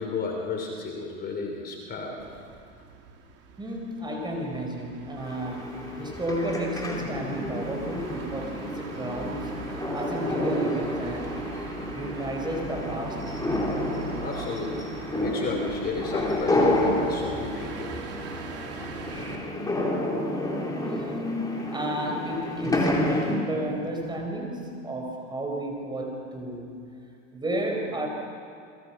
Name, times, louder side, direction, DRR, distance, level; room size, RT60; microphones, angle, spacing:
voice 1, 0.0-2.2 14.2-17.9, left 4 dB, 25° left, 2 dB, 3.3 m, -33 dB
sound 1, 2.2-19.4, right 5 dB, 40° right, 3.2 m, -42 dB
voice 2, 3.6-9.5 9.9-11.4 11.9-13.3 20.8-26.7 27.3-28.1, right 1 dB, 10° right, 2 dB, 5.1 m, -32 dB
sound 2, 5.2-23.4, left 1 dB, 10° left, 3.9 m, -30 dB
30.0 x 22.5 x 5.9 m, 2.4 s
hypercardioid pair, 120°, 38 cm